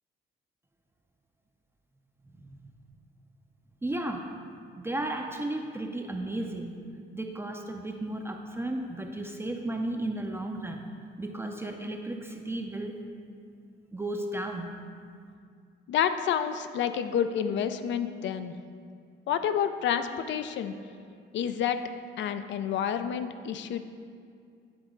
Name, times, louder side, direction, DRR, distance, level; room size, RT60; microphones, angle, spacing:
voice 1, 2.4-2.7 3.8-4.3 4.8-6.7 7.1-10.9 11.2-12.9 13.9-14.7, right 1 dB, 10° right, 2 dB, 0.5 m, -34 dB
voice 2, 15.9-18.5 19.3-20.7 21.3-21.8 22.2-23.8, left 8 dB, 70° left, 10 dB, 0.4 m, -29 dB
9.5 x 3.9 x 3.8 m, 2.3 s
cardioid pair, 90°, 20 cm